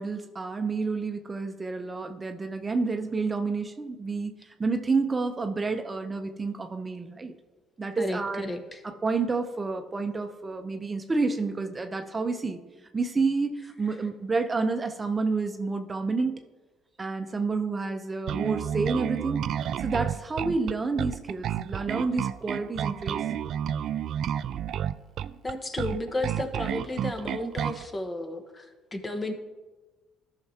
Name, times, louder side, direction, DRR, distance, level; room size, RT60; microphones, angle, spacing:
voice 1, 0.0-7.3 7.8-8.5 8.8-12.6 12.9-16.4 17.0-19.5 19.8-23.3, right 4 dB, 25° right, 6 dB, 0.7 m, -29 dB
voice 2, 8.0-8.8 25.4-29.3, left 1 dB, 25° left, 6 dB, 1.2 m, -33 dB
Bass guitar, 18.3-27.9, right 9 dB, 60° right, 0.3 m, -30 dB
14.0 x 5.9 x 2.9 m, 1.2 s
hypercardioid pair, 60°, 0 cm